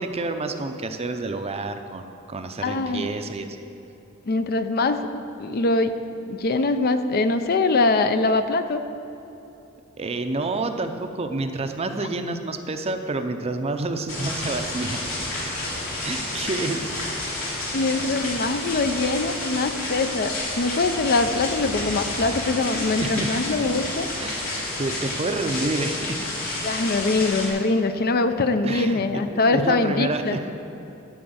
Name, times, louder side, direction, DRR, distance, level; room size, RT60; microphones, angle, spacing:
voice 1, 0.0-3.6 10.0-15.0 16.0-17.0 22.4-22.5 23.0-23.3 23.6-23.7 24.2-24.5 24.8-26.3 28.6-30.4, right 2 dB, 30° right, 7 dB, 0.6 m, -29 dB
voice 2, 2.6-3.1 4.3-5.0 5.4-6.0 6.3-8.8 12.0-12.1 17.7-24.1 26.6-30.4, left 3 dB, 50° left, 9 dB, 0.5 m, -23 dB
sound 1, 14.1-27.5, left 2 dB, 85° left, 2.6 m, -30 dB
12.5 x 4.6 x 7.9 m, 2.9 s
head